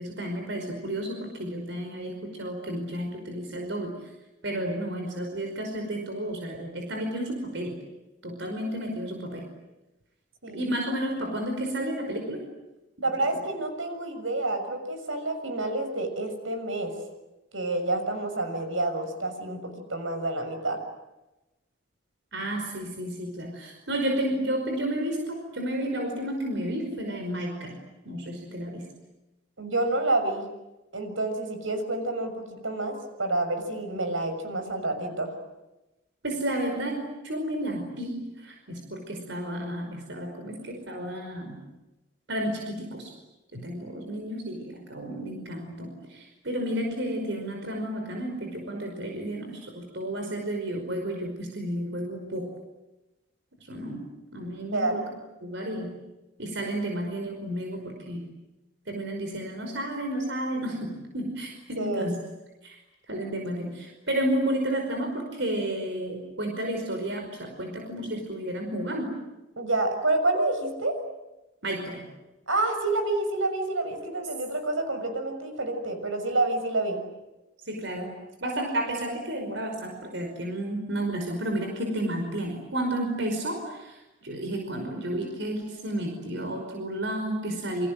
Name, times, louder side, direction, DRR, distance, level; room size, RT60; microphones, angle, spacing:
voice 1, 0.0-4.1 4.4-7.8 8.2-9.5 10.5-12.5 22.3-27.8 28.1-28.9 36.2-41.6 42.3-43.1 43.5-52.6 53.7-55.1 55.4-56.0 56.4-58.3 58.9-62.1 62.6-62.8 63.1-69.1 71.6-72.1 77.7-87.9, right 1 dB, 65° right, 3 dB, 5.2 m, -32 dB
voice 2, 13.0-17.0 17.5-20.8 29.6-30.4 30.9-35.3 54.7-55.0 61.8-62.1 69.6-71.0 72.5-77.0, right 2 dB, 85° right, 7 dB, 6.6 m, -28 dB
29.0 x 26.0 x 7.8 m, 1.0 s
head